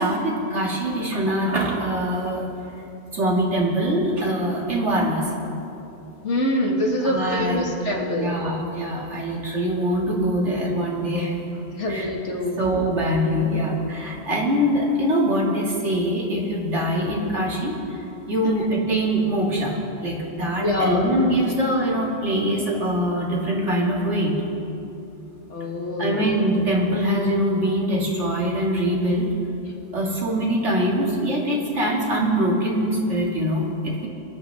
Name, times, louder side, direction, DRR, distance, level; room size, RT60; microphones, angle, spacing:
voice 1, 0.0-2.5 3.1-5.3 7.0-7.7 8.1-11.3 11.9-12.0 12.6-19.8 20.0-24.4 26.0-29.3 29.9-34.1, equal, 80° right, -3 dB, 2.7 m, -23 dB
voice 2, 6.2-8.3 11.7-12.6 18.4-18.5 20.6-21.1 25.5-26.3, left 1 dB, 80° left, -1 dB, 2.1 m, -25 dB
24.5 x 11.0 x 3.6 m, 2.8 s
omnidirectional pair, 1.2 m